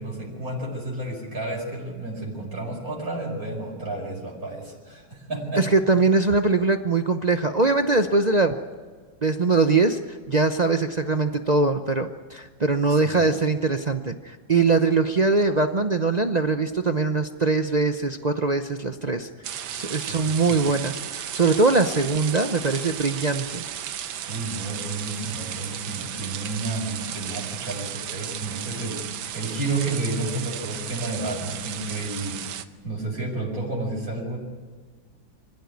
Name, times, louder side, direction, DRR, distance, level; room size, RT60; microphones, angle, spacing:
voice 1, 0.0-5.7 13.0-13.2 20.1-20.8 24.3-32.4 32.8-34.4, right 2 dB, 45° right, -2 dB, 5.5 m, -31 dB
voice 2, 5.6-8.6 9.2-19.3 19.8-23.7, right 3 dB, 65° right, 7 dB, 0.4 m, -22 dB
sound 1, 19.4-32.6, right 10 dB, 85° right, 1.7 m, -34 dB
25.0 x 15.5 x 9.5 m, 1.5 s
omnidirectional pair, 2.1 m